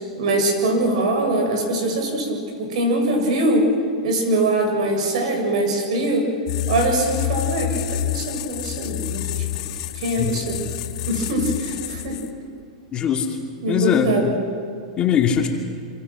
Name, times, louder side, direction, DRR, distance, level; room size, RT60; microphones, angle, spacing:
voice 1, 0.2-3.7 4.0-6.3 6.7-9.3 9.5-9.6 9.9-10.6 11.1-12.2 13.6-14.3, right 1 dB, 70° right, 3 dB, 7.6 m, -22 dB
sound 1, 6.5-12.5, left 13 dB, 60° left, 1.9 m, -28 dB
voice 2, 12.9-13.4 13.7-14.1 15.0-15.5, left 9 dB, 25° left, 2 dB, 2.6 m, -20 dB
26.5 x 25.0 x 6.4 m, 2.4 s
supercardioid pair, 145°, 4 cm